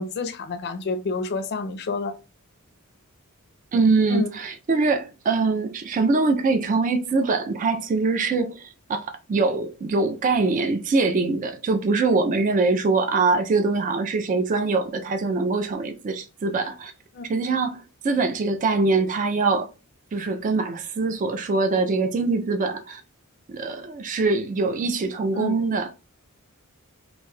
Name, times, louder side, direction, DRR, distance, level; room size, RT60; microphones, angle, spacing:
voice 1, 0.0-2.1 4.1-4.3 17.1-17.3 25.3-25.5, left 3 dB, 50° left, 0.4 m, -28 dB
voice 2, 3.7-16.9 17.3-19.7 20.1-23.0 23.5-25.9, right 3 dB, 35° right, 0.3 m, -23 dB
2.5 x 2.2 x 3.1 m
head